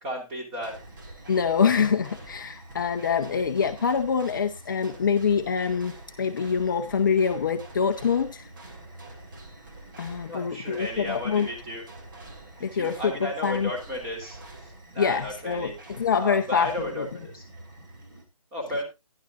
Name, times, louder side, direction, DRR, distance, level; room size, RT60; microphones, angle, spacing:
voice 1, 0.0-0.7 10.3-11.8 12.7-15.7 16.2-17.4 18.5-18.8, equal, 15° right, 1 dB, 3.2 m, -34 dB
sound 1, 0.6-18.2, right 2 dB, 35° right, 2.6 m, -46 dB
voice 2, 1.3-8.5 10.0-11.5 12.6-13.7 15.0-15.7 16.0-16.7 17.0-17.1, left 6 dB, 35° left, 7 dB, 0.7 m, -25 dB
14.5 x 10.5 x 2.5 m, 0.25 s
figure-of-eight pair, 155°, 18 cm